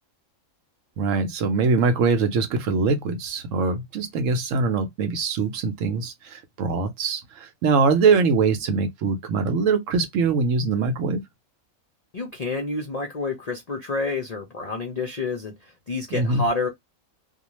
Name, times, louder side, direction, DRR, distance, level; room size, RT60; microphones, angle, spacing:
voice 1, 1.0-11.2 16.1-16.4, right 4 dB, 70° right, 0.9 m, -23 dB
voice 2, 12.1-16.7, left 3 dB, 55° left, 0.4 m, -29 dB
2.4 x 2.2 x 2.9 m
omnidirectional pair, 1.5 m